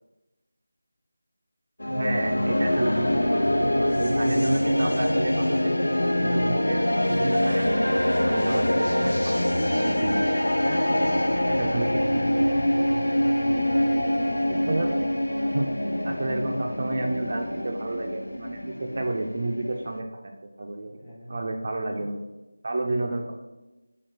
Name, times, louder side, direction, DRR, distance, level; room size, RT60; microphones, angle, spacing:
sound 1, 1.8-20.0, left 1 dB, 85° left, 0.4 m, -24 dB
voice 1, 1.9-3.4 3.8-5.7 6.2-9.5 9.8-10.2 11.4-12.4 14.5-14.9 15.5-15.7 16.0-20.3 20.6-21.0 21.3-22.2 22.6-23.3, right 2 dB, 45° right, 2 dB, 0.4 m, -30 dB
voice 2, 10.6-11.6 13.6-14.0 21.0-21.4 22.0-22.1 23.1-23.3, equal, 15° left, -8 dB, 1.2 m, -40 dB
4.3 x 2.9 x 3.9 m, 1.1 s
figure-of-eight pair, 165°, 0 cm